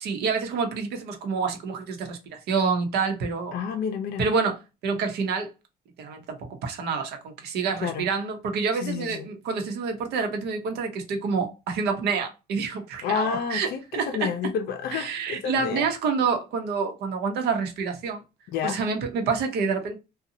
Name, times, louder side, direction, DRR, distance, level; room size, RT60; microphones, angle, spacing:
voice 1, 0.0-3.6 4.2-5.5 6.0-14.3 14.9-18.2 18.6-20.0, right 5 dB, 75° right, 0.8 m, -28 dB
voice 2, 3.5-4.3 7.8-8.1 8.7-9.3 13.0-15.8 18.5-18.8, left 7 dB, 70° left, 0.5 m, -29 dB
2.7 x 2.3 x 2.6 m
cardioid pair, 110°, 17 cm